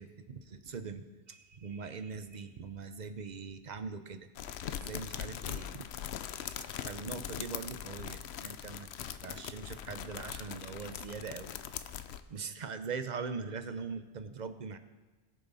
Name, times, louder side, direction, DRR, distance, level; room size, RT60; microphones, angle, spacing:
voice 1, 0.0-4.3 4.7-5.9 6.4-6.6 6.9-8.9 9.2-11.6 12.3-14.8, right 5 dB, 50° right, 10 dB, 0.8 m, -41 dB
sound 1, 4.4-12.2, left 10 dB, 85° left, 0.9 m, -41 dB
21.0 x 7.0 x 4.1 m, 1.2 s
omnidirectional pair, 1.1 m